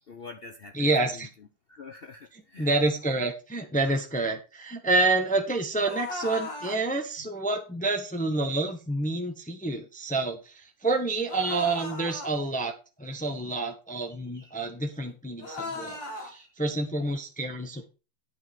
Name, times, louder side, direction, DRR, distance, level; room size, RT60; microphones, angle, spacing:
voice 1, 0.1-1.3 1.7-2.8 14.3-14.5 16.2-16.5, left 4 dB, 85° left, 5 dB, 0.5 m, -46 dB
voice 2, 0.7-1.3 2.6-17.9, right 2 dB, 5° left, 4 dB, 0.9 m, -28 dB
sound 1, 5.8-6.8 11.3-12.3 15.4-16.3, left 3 dB, 60° left, 3.2 m, -37 dB
9.3 x 5.4 x 6.0 m, 0.31 s
omnidirectional pair, 2.3 m